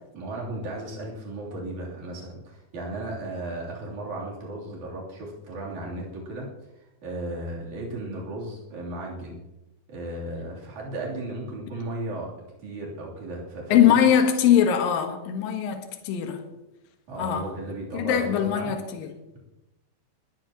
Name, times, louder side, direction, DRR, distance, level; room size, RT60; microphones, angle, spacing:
voice 1, 0.1-6.5 7.0-9.4 9.9-12.3 12.6-14.0 17.1-18.7, right 2 dB, 55° right, -4 dB, 4.6 m, -35 dB
voice 2, 13.7-16.4 17.2-17.5 17.9-19.2, left 9 dB, 75° left, 5 dB, 3.0 m, -22 dB
20.5 x 15.0 x 3.0 m, 0.96 s
omnidirectional pair, 4.3 m